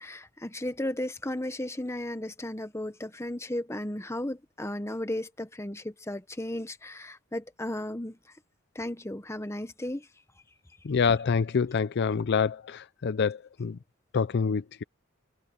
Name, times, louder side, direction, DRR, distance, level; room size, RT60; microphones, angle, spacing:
voice 1, 0.0-8.2 8.7-10.1, left 1 dB, 15° left, 1.1 m, -35 dB
voice 2, 10.8-13.8 14.1-14.8, left 5 dB, 50° left, 0.4 m, -26 dB
head